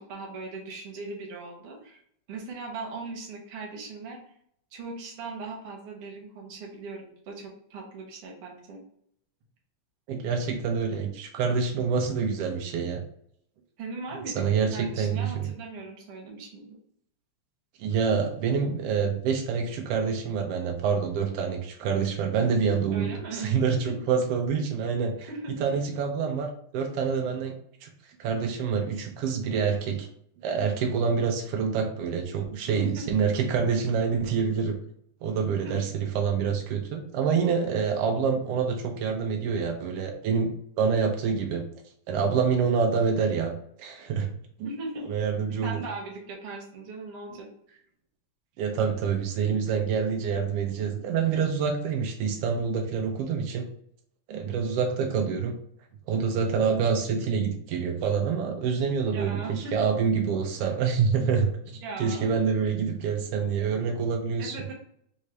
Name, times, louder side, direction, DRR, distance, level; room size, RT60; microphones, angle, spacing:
voice 1, 0.0-2.0 2.3-4.2 4.7-8.8 13.8-14.4 14.7-16.8 22.9-23.6 23.8-24.0 25.3-25.6 32.8-33.0 35.6-35.8 44.6-45.1 45.6-47.5 54.3-54.6 59.1-59.9 61.7-62.3 64.4-64.7, right 3 dB, 65° right, -1 dB, 1.6 m, -39 dB
voice 2, 10.1-13.0 14.3-15.5 17.8-25.3 25.6-27.5 27.8-27.9 28.2-30.1 30.4-34.8 35.2-40.5 40.8-41.6 42.1-43.5 43.8-44.3 44.6-44.7 45.1-45.8 48.6-53.6 54.3-55.6 56.1-61.6 62.0-64.6, right 6 dB, 85° right, 3 dB, 1.3 m, -26 dB
4.7 x 2.7 x 3.1 m, 0.67 s
omnidirectional pair, 3.3 m